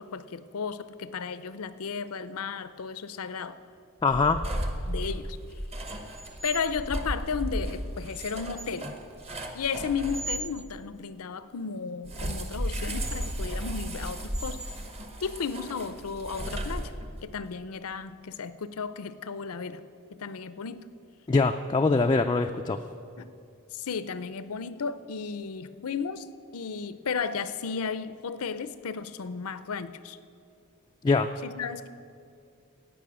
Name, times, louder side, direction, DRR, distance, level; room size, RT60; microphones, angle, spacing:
voice 1, 0.0-3.6 4.9-5.4 6.4-9.0 9.5-14.6 15.2-16.9 17.2-19.8 20.2-20.9 23.2-23.3 23.7-26.3 26.5-30.2 31.4-31.9, left 5 dB, 70° left, 14 dB, 0.6 m, -34 dB
voice 2, 4.0-4.4 21.3-22.8 31.0-31.3, left 3 dB, 20° left, 4 dB, 0.3 m, -23 dB
sound 1, 4.1-10.5 12.0-17.3, right 1 dB, 30° right, 1.1 m, -34 dB
16.0 x 5.5 x 8.6 m, 2.4 s
head